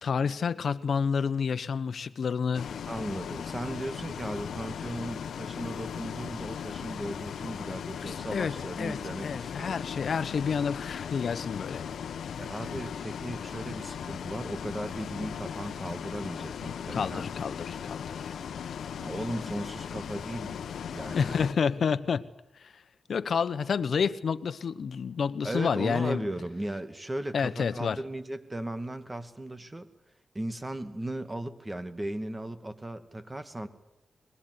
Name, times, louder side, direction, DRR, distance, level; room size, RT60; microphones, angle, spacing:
voice 1, 0.0-2.7 8.0-11.8 12.7-12.8 16.9-18.2 21.1-22.2 22.6-22.7 23.1-26.3 27.3-28.0, left 6 dB, 70° left, 1.2 m, -29 dB
Bus, 2.5-21.5, left 7 dB, 90° left, 1.2 m, -38 dB
voice 2, 2.9-9.9 12.4-17.3 19.0-20.6 20.9-21.5 25.4-29.9 30.3-33.7, right 1 dB, 20° right, 2.4 m, -37 dB
22.0 x 21.5 x 9.9 m
cardioid pair, 70°, 0 cm